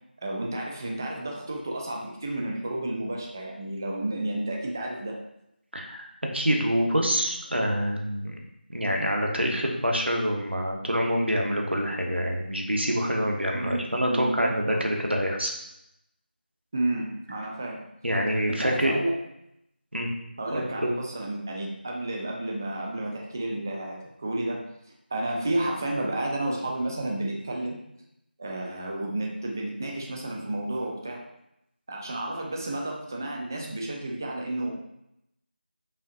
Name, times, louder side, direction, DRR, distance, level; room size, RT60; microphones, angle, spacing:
voice 1, 0.2-5.2 13.5-13.8 14.1-14.5 16.7-17.8 18.5-19.1 20.4-24.6 25.1-27.8 28.4-31.2 31.9-34.7, right 1 dB, 20° right, -1 dB, 0.4 m, -31 dB
voice 2, 5.7-6.1 6.3-8.4 8.7-15.5 18.0-18.9 19.9-20.1 20.5-20.9, equal, 90° right, 1 dB, 1.0 m, -26 dB
5.4 x 2.7 x 2.6 m, 0.81 s
figure-of-eight pair, 170°, 6 cm